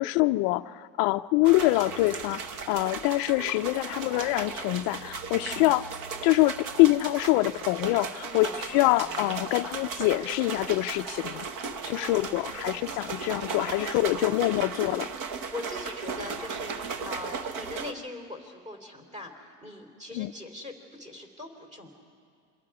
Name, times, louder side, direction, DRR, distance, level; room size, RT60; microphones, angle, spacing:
voice 1, 0.0-2.4 2.7-5.8 6.2-11.4 11.9-15.1 20.2-20.3, left 19 dB, 50° left, 9 dB, 0.5 m, -25 dB
sound 1, 1.4-17.9, right 5 dB, 40° right, 1.2 m, -36 dB
voice 2, 5.4-5.7 8.2-8.5 12.0-12.4 15.2-21.9, left 2 dB, 15° right, 3 dB, 3.3 m, -42 dB
27.5 x 23.5 x 4.9 m, 2.3 s
supercardioid pair, 120°, 47 cm